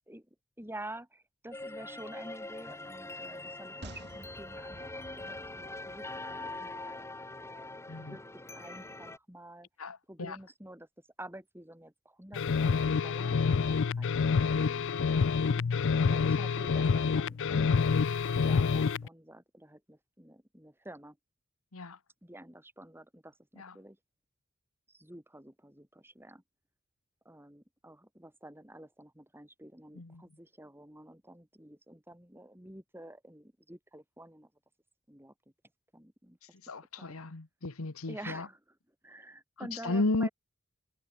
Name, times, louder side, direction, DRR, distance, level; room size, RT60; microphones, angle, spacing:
voice 1, 0.6-7.7 8.0-9.7 10.1-10.9 11.2-14.9 16.0-18.0 18.4-21.2 22.2-24.0 24.9-26.4 27.3-34.5 35.1-35.3 35.9-36.4 37.0-37.2 38.1-38.6 39.0-40.3, right 1 dB, 10° right, 7.3 m, -49 dB
sound 1, 1.5-9.2, left 2 dB, 10° left, 1.8 m, -43 dB
sound 2, 3.8-7.3 7.6-7.7, right 1 dB, 50° right, 5.3 m, -51 dB
voice 2, 9.8-10.4 15.5-16.0 21.7-22.0 23.6-23.7 29.9-30.2 36.6-38.5 39.7-40.3, left 2 dB, 80° left, 1.3 m, -34 dB
sound 3, 12.3-19.1, left 5 dB, 60° left, 0.5 m, -27 dB
head